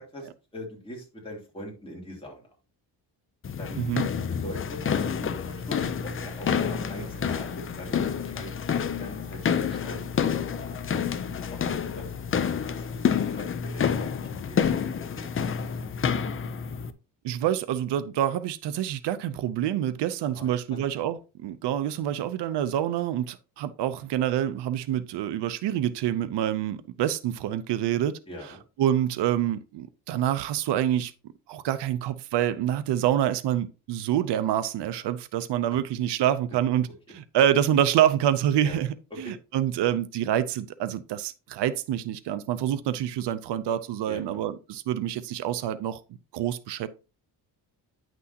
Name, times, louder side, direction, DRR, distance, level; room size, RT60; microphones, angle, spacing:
voice 1, 0.0-2.5 3.6-3.8 4.4-10.8 11.2-12.1 12.7-15.4 20.3-20.8 28.3-28.6 38.6-38.8 39.1-39.4 44.1-44.4, left 1 dB, 15° left, 2.9 m, -42 dB
sound 1, 3.4-16.9, left 7 dB, 35° left, 0.5 m, -29 dB
voice 2, 3.8-4.1 17.2-28.2 28.8-31.1 31.5-36.9 37.1-46.0 46.3-46.9, right 11 dB, 85° right, 0.7 m, -27 dB
Engine, 6.1-11.9, equal, 30° right, 1.5 m, -52 dB
9.5 x 6.1 x 2.8 m
cardioid pair, 135°, 40 cm